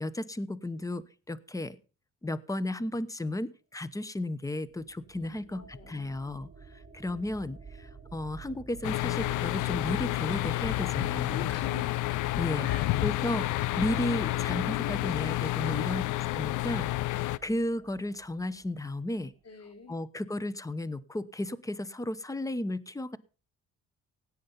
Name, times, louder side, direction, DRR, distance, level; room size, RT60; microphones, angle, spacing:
voice 1, 0.0-1.8 2.2-6.5 6.9-11.5 12.4-12.7 13.0-16.0 16.3-19.3 19.9-23.2, left 1 dB, 10° left, 18 dB, 1.0 m, -34 dB
sound 1, 4.7-19.3, right 5 dB, 20° right, 3.8 m, -52 dB
voice 2, 5.2-6.2 11.1-11.9 12.6-12.9 15.6-16.0 19.4-20.0, left 5 dB, 55° left, 7 dB, 3.6 m, -44 dB
sound 2, 8.8-17.4, left 17 dB, 85° left, 0.6 m, -30 dB
16.5 x 9.4 x 5.4 m, 0.36 s
cardioid pair, 90°, 30 cm